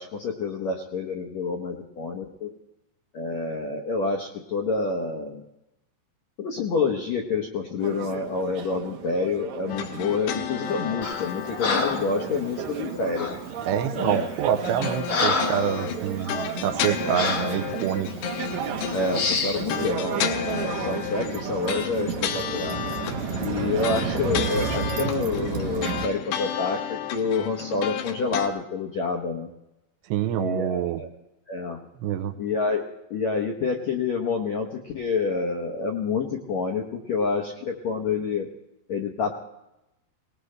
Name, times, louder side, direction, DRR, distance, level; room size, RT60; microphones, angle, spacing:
voice 1, 0.0-2.5 3.1-5.4 6.4-13.3 13.9-14.6 17.0-17.2 18.9-22.8 23.4-29.5 30.4-31.1 31.5-31.8 32.4-38.5 38.9-39.3, left 4 dB, 70° left, 0 dB, 1.6 m, -28 dB
sound 1, 7.8-26.1, right 6 dB, 70° right, 1.8 m, -32 dB
sound 2, 9.7-13.4 14.6-28.5, left 10 dB, 90° left, 3.2 m, -33 dB
Breathing, 11.0-11.3 11.6-12.1 13.1-13.4 14.1-14.3 14.7-15.7 16.2-16.4 17.1-17.5 18.3-18.5 19.1-19.6, left 4 dB, 55° left, 1.5 m, -27 dB
voice 2, 13.6-18.1 30.1-31.0 32.0-32.4, right 9 dB, 90° right, 9 dB, 3.0 m, -26 dB
20.0 x 19.5 x 3.3 m, 0.92 s
omnidirectional pair, 4.9 m